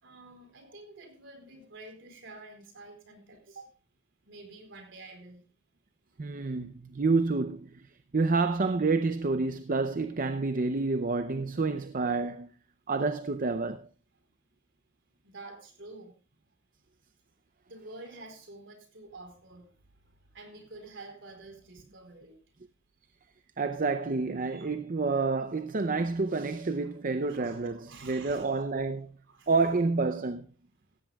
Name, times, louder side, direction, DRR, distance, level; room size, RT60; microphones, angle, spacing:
voice 1, 0.0-3.7 4.3-5.4 15.2-16.1 17.7-19.7 20.3-22.4 24.4-24.7 26.8-26.9 27.2-28.6 29.3-29.7, right 2 dB, 65° right, 4.3 m, -49 dB
voice 2, 6.2-7.9 8.1-12.5 12.9-13.9 23.6-29.1 29.5-30.4, right 3 dB, 40° right, 0.6 m, -29 dB
16.5 x 14.5 x 2.3 m
head